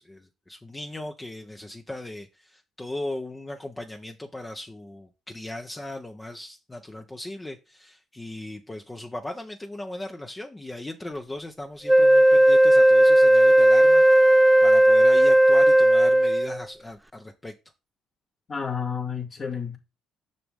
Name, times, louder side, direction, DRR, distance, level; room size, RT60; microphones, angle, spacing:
voice 1, 0.0-17.5, left 1 dB, 20° left, 1.0 m, -38 dB
Wind instrument woodwind instrument, 11.9-16.6, right 1 dB, 10° right, 0.5 m, -16 dB
voice 2, 18.5-19.8, left 6 dB, 45° left, 2.4 m, -30 dB
6.7 x 6.0 x 3.7 m
hypercardioid pair, 50°, 0 cm